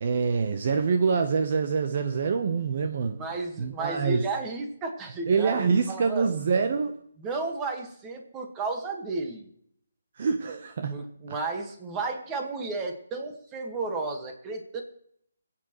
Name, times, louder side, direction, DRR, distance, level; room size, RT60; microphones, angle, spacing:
voice 1, 0.0-3.2 3.6-4.2 5.3-6.9 10.2-11.0, right 5 dB, 45° right, 0.8 m, -25 dB
voice 2, 3.2-6.3 7.2-9.5 10.9-14.8, right 3 dB, 15° right, 1.5 m, -33 dB
23.5 x 8.7 x 3.0 m
hypercardioid pair, 165°, 0 cm